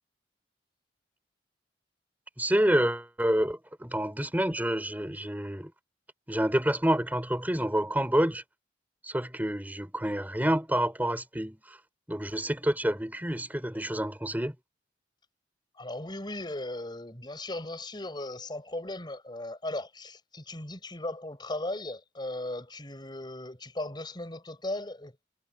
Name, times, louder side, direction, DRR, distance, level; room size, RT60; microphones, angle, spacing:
voice 1, 2.4-5.7 6.3-8.4 9.0-11.8 12.1-14.5, right 1 dB, 10° right, 3.5 m, -28 dB
voice 2, 15.8-25.2, left 1 dB, 25° left, 4.9 m, -37 dB
head